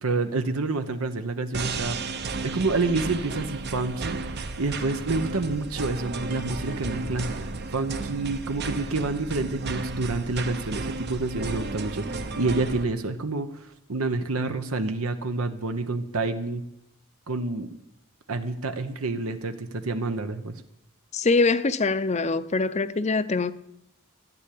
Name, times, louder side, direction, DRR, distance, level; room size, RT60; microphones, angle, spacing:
voice 1, 0.0-2.0 2.4-4.2 4.6-16.6 17.3-17.7 18.3-20.5, right 3 dB, 80° right, 1.0 m, -28 dB
sound 1, 1.5-12.8, right 3 dB, 50° right, 1.0 m, -33 dB
voice 2, 21.1-23.5, left 3 dB, 30° left, 0.6 m, -23 dB
13.5 x 10.0 x 8.5 m
head